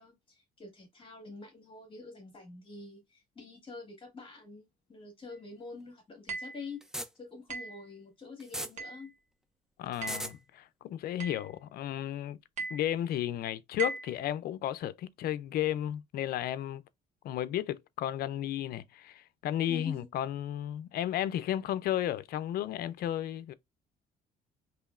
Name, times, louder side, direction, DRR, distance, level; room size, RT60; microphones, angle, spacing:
voice 1, 0.0-6.8 7.2-9.1 19.7-20.1, left 3 dB, 30° left, 1.7 m, -46 dB
sound 1, 6.3-6.7 7.5-7.8 8.8-9.1 10.0-10.3 11.2-11.5 12.6-12.9 13.8-14.1, right 4 dB, 45° right, 1.3 m, -38 dB
sound 2, 6.8-7.1 8.4-8.7 9.9-10.3, right 1 dB, 5° right, 0.4 m, -36 dB
voice 2, 9.8-12.4 12.7-16.8 17.2-23.5, left 12 dB, 65° left, 0.5 m, -33 dB
4.9 x 3.0 x 2.5 m
cardioid pair, 110°, 17 cm